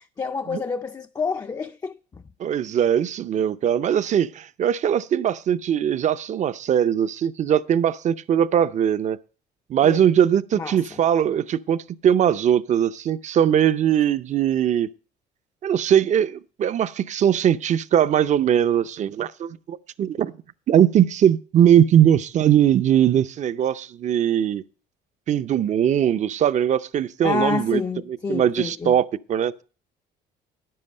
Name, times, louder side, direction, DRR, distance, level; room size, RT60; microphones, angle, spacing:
voice 1, 0.0-2.2 9.8-10.1 10.5-11.0 27.2-29.0, left 4 dB, 20° left, 0.4 m, -28 dB
voice 2, 2.4-9.2 9.7-14.9 15.6-20.3 20.7-24.6 25.3-27.8 28.3-29.6, right 9 dB, 45° right, 0.5 m, -20 dB
10.0 x 7.6 x 5.4 m
cardioid pair, 110°, 17 cm